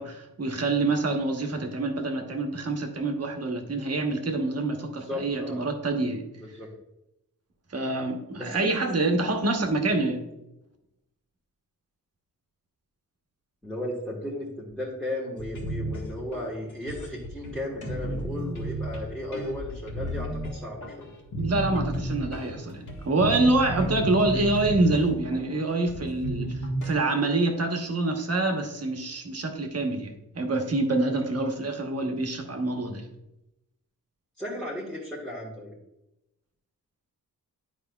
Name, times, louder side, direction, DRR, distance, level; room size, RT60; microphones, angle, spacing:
voice 1, 0.0-6.3 7.7-10.2 21.4-33.0, right 2 dB, 45° right, 4 dB, 1.0 m, -26 dB
voice 2, 5.1-5.6 6.4-6.7 8.3-8.8 9.2-9.6 13.6-21.1 34.4-35.7, left 1 dB, ahead, -6 dB, 1.3 m, -35 dB
sound 1, 15.4-26.9, right 1 dB, 60° left, 1.6 m, -33 dB
9.9 x 4.8 x 2.3 m, 0.90 s
wide cardioid pair, 125°, 35 cm